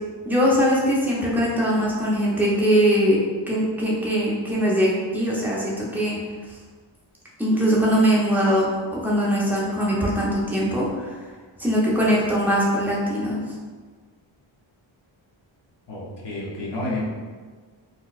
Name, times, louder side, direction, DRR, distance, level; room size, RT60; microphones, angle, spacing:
voice 1, 0.2-3.2 3.5-6.2 7.4-11.2 11.6-13.4, equal, 5° right, -6 dB, 0.7 m, -21 dB
voice 2, 15.9-17.0, left 2 dB, 55° left, -5 dB, 0.8 m, -30 dB
4.0 x 2.3 x 2.4 m, 1.5 s
wide cardioid pair, 110°, 48 cm